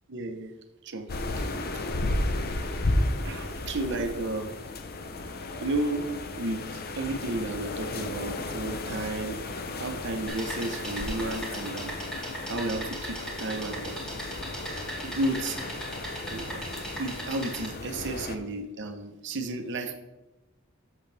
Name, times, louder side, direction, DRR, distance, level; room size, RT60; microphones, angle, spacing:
voice 1, 0.1-0.5 0.8-1.1 1.7-1.8 3.2-4.5 5.6-6.0 6.4-9.4 9.8-11.9 12.5-14.0 15.0-15.8 16.3-16.6 17.0-19.9, right 2 dB, 60° right, 6 dB, 1.0 m, -32 dB
sound 1, 1.1-18.4, left 2 dB, 50° left, 0.8 m, -34 dB
sound 2, 10.3-17.7, right 1 dB, 5° left, 2.4 m, -39 dB
8.2 x 7.3 x 3.5 m, 1.1 s
head